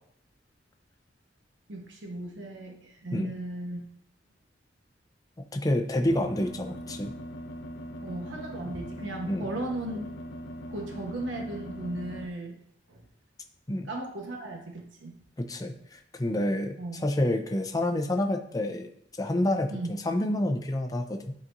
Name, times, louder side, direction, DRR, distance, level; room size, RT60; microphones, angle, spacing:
voice 1, 1.7-3.8 8.0-10.1 10.5-12.6 12.9-13.1 13.9-15.1 16.8-17.0 19.7-19.9, right 1 dB, 85° right, 1 dB, 1.1 m, -36 dB
voice 2, 5.5-7.1 9.3-9.5 13.7-13.9 15.4-18.9 19.2-21.3, left 1 dB, 20° left, 4 dB, 0.6 m, -28 dB
sound 1, 6.0-12.3, equal, 70° left, 0.7 m, -41 dB
11.0 x 4.2 x 2.6 m, 0.66 s
head